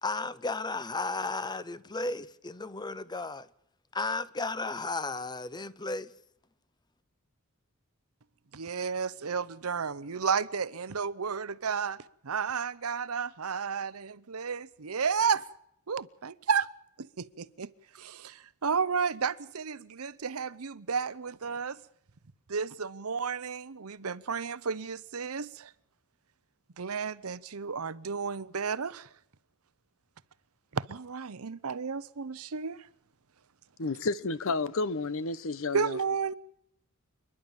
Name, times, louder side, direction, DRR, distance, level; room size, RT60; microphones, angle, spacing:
voice 1, 0.0-3.5 3.9-6.1, left 3 dB, 20° left, 0.8 m, -34 dB
voice 2, 8.5-15.4 15.9-16.7 17.0-17.7 17.9-21.8 22.5-25.7 26.8-29.1 30.7-32.9 35.7-36.3, right 6 dB, 80° right, 0.8 m, -32 dB
voice 3, 33.8-36.0, left 3 dB, 65° left, 0.9 m, -31 dB
28.0 x 11.0 x 9.0 m
head